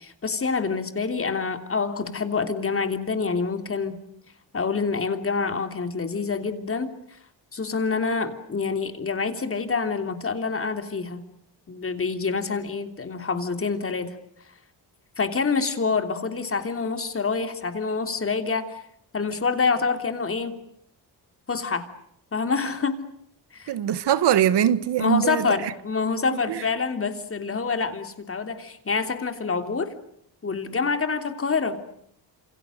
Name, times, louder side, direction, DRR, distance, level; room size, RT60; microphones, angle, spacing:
voice 1, 0.0-4.0 4.5-7.0 7.5-11.2 11.7-14.2 15.2-18.8 19.1-20.6 21.5-21.9 22.3-23.0 23.5-23.7 25.0-29.9 30.4-31.8, left 4 dB, 30° left, 3.3 m, -27 dB
voice 2, 23.7-25.7 26.5-26.6, right 10 dB, 70° right, 1.5 m, -22 dB
29.5 x 28.0 x 6.6 m
cardioid pair, 115°, 43 cm